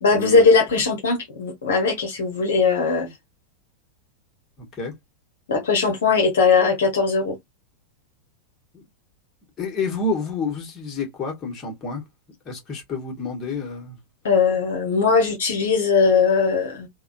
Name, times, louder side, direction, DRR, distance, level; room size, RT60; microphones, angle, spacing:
voice 1, 0.0-3.1 5.5-7.4 14.2-16.9, left 4 dB, 60° left, 0.9 m, -19 dB
voice 2, 4.6-4.9 8.7-8.8 9.6-12.0 12.4-14.0, left 3 dB, 30° left, 1.6 m, -29 dB
3.5 x 2.3 x 2.5 m
figure-of-eight pair, 90°, 0 cm